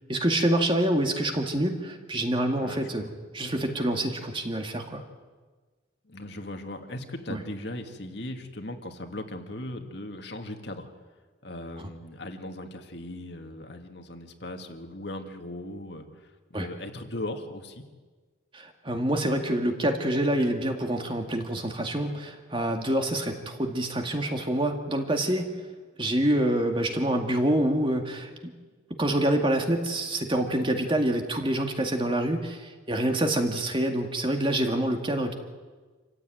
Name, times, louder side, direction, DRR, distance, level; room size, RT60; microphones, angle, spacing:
voice 1, 0.1-5.0 7.3-7.4 11.8-11.9 16.5-16.7 18.5-25.5 26.0-28.3 29.0-35.3, right 1 dB, 25° right, 4 dB, 2.2 m, -26 dB
voice 2, 2.5-3.1 6.0-10.9 11.4-17.8 32.9-33.2, left 1 dB, 60° left, 4 dB, 2.2 m, -38 dB
27.5 x 15.0 x 9.3 m, 1.4 s
head